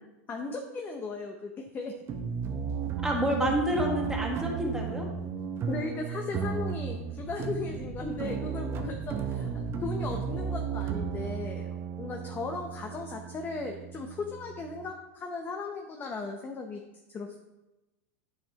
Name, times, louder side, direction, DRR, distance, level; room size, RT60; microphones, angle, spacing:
voice 1, 0.3-2.0 5.7-16.8 17.1-17.4, left 3 dB, 25° left, 3 dB, 0.7 m, -37 dB
sound 1, 2.1-14.9, right 6 dB, 35° right, 0.7 m, -34 dB
voice 2, 3.0-5.1, equal, 5° right, -2 dB, 1.4 m, -28 dB
9.5 x 5.4 x 2.9 m, 1.0 s
hypercardioid pair, 110°, 8 cm